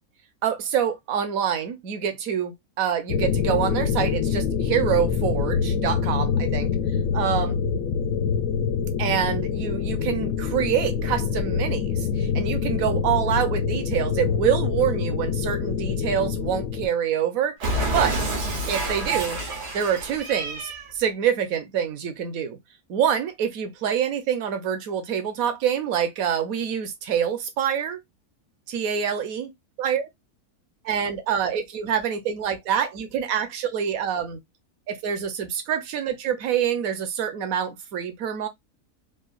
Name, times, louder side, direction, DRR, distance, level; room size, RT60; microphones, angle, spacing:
voice 1, 0.4-6.7 7.1-7.6 9.0-17.5 17.9-18.2 18.7-19.4 19.7-22.6 22.9-28.0 28.7-29.5 29.8-30.0 30.8-34.4 34.9-38.5, right 8 dB, 65° right, 1.1 m, -26 dB
sound 1, 3.1-16.9, left 6 dB, 70° left, 0.9 m, -25 dB
Cat, 17.6-20.9, right 1 dB, 85° right, 1.6 m, -28 dB
3.8 x 2.2 x 2.4 m
omnidirectional pair, 1.6 m